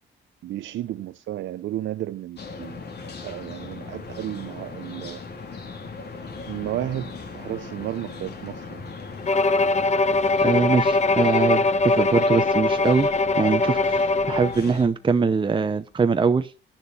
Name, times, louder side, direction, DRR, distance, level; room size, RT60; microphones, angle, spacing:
voice 1, 0.4-2.8 3.2-5.2 6.4-8.8, right 13 dB, 70° right, 0.7 m, -33 dB
sound 1, 2.4-14.9, left 4 dB, 55° left, 2.8 m, -38 dB
Bowed string instrument, 9.3-14.6, left 3 dB, 35° left, 1.0 m, -21 dB
voice 2, 10.4-13.1 13.3-16.5, right 5 dB, 25° right, 0.8 m, -22 dB
11.5 x 6.9 x 7.0 m
cardioid pair, 90°, 20 cm